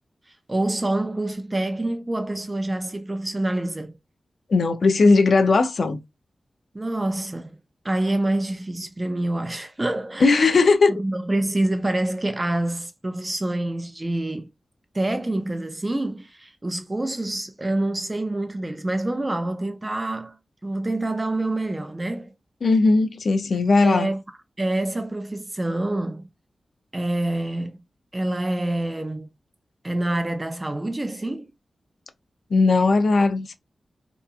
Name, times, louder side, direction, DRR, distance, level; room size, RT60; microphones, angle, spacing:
voice 1, 0.5-4.0 6.7-7.6 7.8-10.6 10.9-14.5 14.9-20.4 20.6-22.3 23.8-24.2 24.6-26.3 26.9-27.8 28.1-29.3 29.8-31.5, right 1 dB, 20° right, 0.3 m, -26 dB
voice 2, 4.5-6.0 10.2-10.9 22.6-24.1 32.5-33.5, left 3 dB, 60° left, 0.5 m, -18 dB
2.8 x 2.2 x 2.4 m
wide cardioid pair, 125°, 0 cm